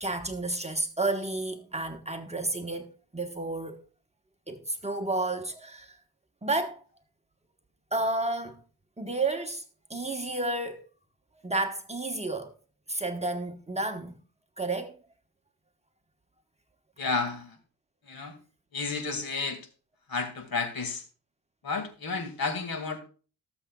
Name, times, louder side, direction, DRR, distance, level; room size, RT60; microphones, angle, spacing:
voice 1, 0.0-3.8 4.5-6.0 6.4-6.8 7.9-8.6 9.0-9.6 9.9-10.8 11.4-12.5 12.9-14.2 14.6-14.9, right 2 dB, 15° right, 1.2 m, -31 dB
voice 2, 17.0-17.6 18.1-18.4 18.7-19.6 20.1-21.0 21.6-23.0, left 4 dB, 55° left, 2.0 m, -31 dB
18.5 x 7.2 x 2.3 m
cardioid pair, 80°, 42 cm